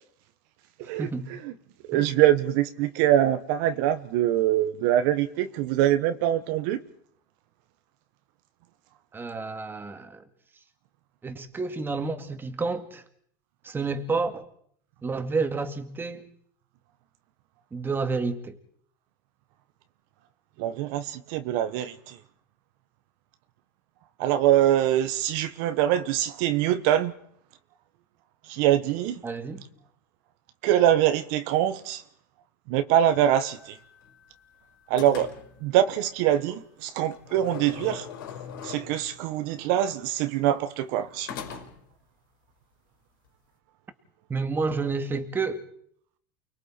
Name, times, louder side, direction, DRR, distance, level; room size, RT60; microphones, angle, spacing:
voice 1, 1.0-1.3 1.9-2.0 9.1-10.2 11.2-13.0 13.6-14.5 15.0-16.3 17.7-18.6 29.2-29.7 44.3-45.6, right 4 dB, 20° right, 2.4 m, -30 dB
voice 2, 1.9-6.8 20.6-22.2 24.2-27.1 28.4-29.2 30.6-32.0 32.7-33.8 34.9-35.3 35.6-38.1 38.6-41.6, right 12 dB, 70° right, 1.2 m, -24 dB
sound 1, 33.0-34.5 35.0-35.6 37.1-39.2 41.3-41.9, left 8 dB, 90° left, 5.4 m, -41 dB
29.5 x 22.0 x 4.5 m
supercardioid pair, 110°, 11 cm